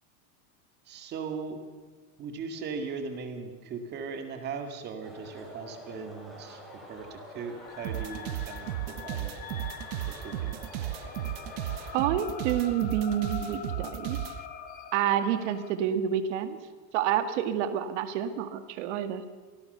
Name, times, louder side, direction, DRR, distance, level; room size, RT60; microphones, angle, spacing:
voice 1, 0.9-1.6 2.2-9.3 10.1-10.6, right 5 dB, 25° right, 7 dB, 2.1 m, -38 dB
sound 1, 5.0-11.9, equal, ahead, 4.9 m, -47 dB
sound 2, 7.6-15.7, left 8 dB, 20° left, 1.2 m, -44 dB
sound 3, 7.8-14.4, right 14 dB, 80° right, 1.3 m, -34 dB
voice 2, 11.9-14.2 14.9-16.6 16.9-19.3, right 10 dB, 55° right, 10 dB, 2.0 m, -28 dB
26.0 x 19.0 x 6.8 m, 1.5 s
supercardioid pair, 180°, 43 cm